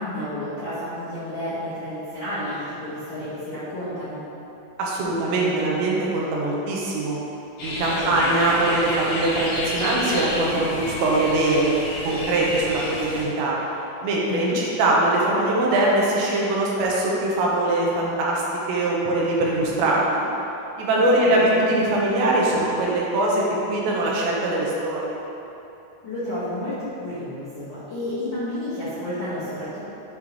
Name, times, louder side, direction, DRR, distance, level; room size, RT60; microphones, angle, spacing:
voice 1, 0.0-4.2 7.7-8.3 14.3-14.6 20.8-21.7 26.0-29.9, left 1 dB, 85° left, -14 dB, 1.0 m, -31 dB
voice 2, 4.8-7.2 7.6-11.8 12.0-13.6 14.0-20.2 20.8-25.2, right 2 dB, 80° right, -4 dB, 3.1 m, -22 dB
sound 1, 7.6-13.2, left 1 dB, 60° left, 1.6 m, -30 dB
9.1 x 5.5 x 3.2 m, 3.0 s
omnidirectional pair, 5.2 m